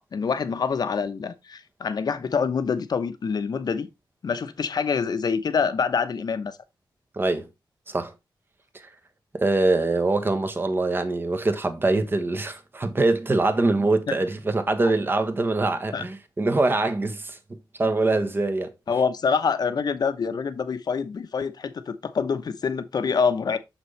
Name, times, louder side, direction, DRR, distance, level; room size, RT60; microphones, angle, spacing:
voice 1, 0.0-3.9 4.2-6.6 14.1-14.2 15.9-16.1 18.9-23.6, left 5 dB, 55° left, 0.9 m, -26 dB
voice 2, 7.2-7.5 7.9-8.1 9.3-18.7, right 2 dB, 25° right, 1.1 m, -24 dB
6.7 x 5.9 x 3.2 m
wide cardioid pair, 130°, 8 cm